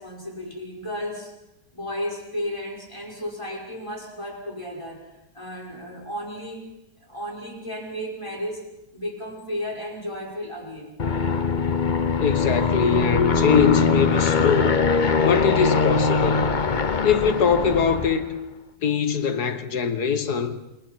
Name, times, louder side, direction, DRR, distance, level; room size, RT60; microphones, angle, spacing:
voice 1, 0.0-1.3 1.7-6.7 7.0-11.0, equal, 20° left, 5.9 m, -34 dB
Aircraft, 11.0-18.3, left 4 dB, 35° left, 1.0 m, -22 dB
voice 2, 12.2-14.8 15.2-16.5 17.0-18.3 18.8-20.5, left 7 dB, 80° left, 2.0 m, -22 dB
29.0 x 26.5 x 4.6 m
omnidirectional pair, 1.7 m